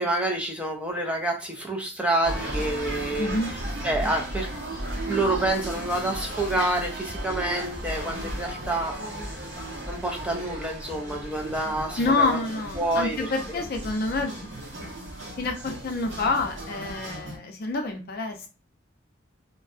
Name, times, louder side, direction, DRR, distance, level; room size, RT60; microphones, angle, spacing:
voice 1, 0.0-4.5 5.1-9.0 9.9-12.4 12.7-13.6, right 1 dB, 5° right, 1 dB, 0.4 m, -28 dB
sound 1, 2.2-17.4, right 1 dB, 75° right, 0.8 m, -35 dB
voice 2, 3.2-3.5 12.0-14.5 15.4-18.5, left 3 dB, 50° left, 4 dB, 0.5 m, -27 dB
2.6 x 2.2 x 2.4 m, 0.33 s
head